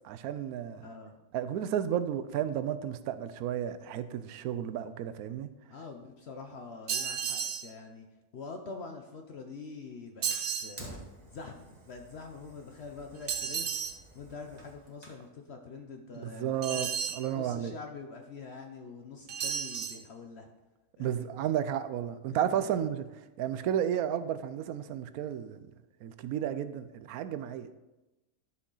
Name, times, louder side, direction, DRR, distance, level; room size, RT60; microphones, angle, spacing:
voice 1, 0.0-0.9 1.3-5.5 16.1-17.7 21.0-25.7 26.0-27.8, right 10 dB, 85° right, 12 dB, 1.1 m, -33 dB
voice 2, 0.8-1.2 5.7-8.1 8.3-11.0 11.3-13.8 14.1-16.9 17.3-20.5 21.0-21.3 22.3-22.7, left 4 dB, 55° left, 4 dB, 0.9 m, -45 dB
sound 1, 6.9-7.7 10.2-10.8 13.3-14.0 16.6-17.3 19.3-20.0, right 8 dB, 60° right, 0.6 m, -33 dB
Fire, 10.3-15.3, right 1 dB, 30° right, 1.6 m, -50 dB
11.5 x 6.3 x 3.9 m, 1.0 s
omnidirectional pair, 1.5 m